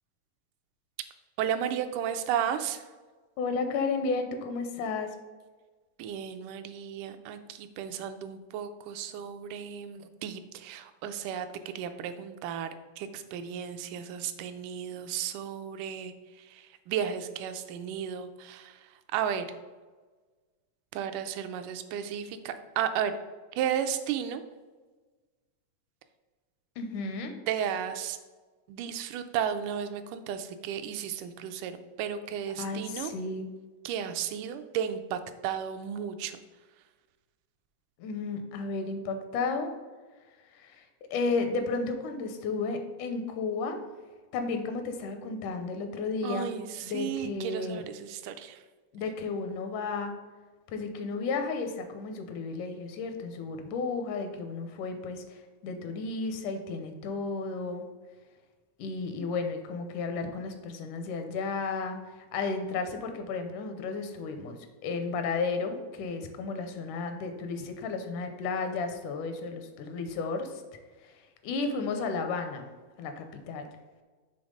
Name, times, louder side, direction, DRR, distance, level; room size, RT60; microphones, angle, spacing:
voice 1, 1.4-2.8 6.0-12.7 13.0-16.1 16.5-18.8 19.1-19.5 20.9-23.2 23.6-24.4 27.5-28.2 28.7-31.7 32.0-33.1 33.9-36.4 46.2-48.6, right 9 dB, 85° right, 9 dB, 2.1 m, -34 dB
voice 2, 3.4-5.2 26.8-27.3 32.6-33.5 38.0-39.7 40.5-43.8 44.3-46.5 46.8-47.8 48.9-50.1 50.7-57.8 58.8-62.0 62.3-64.6 64.8-70.6 71.0-71.1 71.4-72.7 73.0-73.6, left 4 dB, 80° left, 6 dB, 2.2 m, -33 dB
7.1 x 3.4 x 5.2 m, 1.3 s
omnidirectional pair, 3.7 m